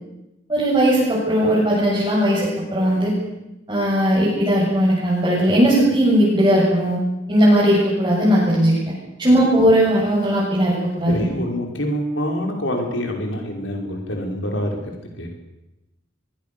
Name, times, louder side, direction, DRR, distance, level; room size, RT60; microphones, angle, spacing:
voice 1, 0.5-3.1 3.7-7.0 7.3-8.8 9.2-11.2, equal, 25° right, -7 dB, 7.8 m, -18 dB
voice 2, 11.1-15.3, equal, 70° left, 1 dB, 5.3 m, -26 dB
23.0 x 23.0 x 7.0 m, 0.96 s
head